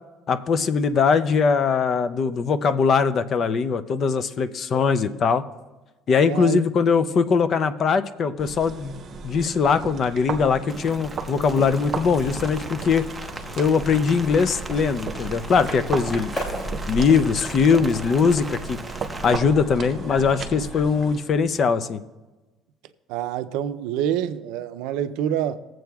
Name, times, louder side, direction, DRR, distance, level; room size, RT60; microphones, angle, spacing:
voice 1, 0.3-5.4 6.1-9.0 9.2-13.1 13.6-16.3 16.9-18.8 19.2-22.0, left 5 dB, 40° left, 0.5 m, -21 dB
voice 2, 6.2-6.6 23.1-25.6, right 10 dB, 85° right, 0.5 m, -26 dB
sound 1, 8.4-21.2, right 5 dB, 40° right, 0.9 m, -36 dB
Rain, 10.7-19.4, right 2 dB, 10° right, 0.6 m, -40 dB
sound 2, 11.0-21.7, equal, 25° left, 2.5 m, -37 dB
21.0 x 7.6 x 2.3 m
cardioid pair, 135°, 0 cm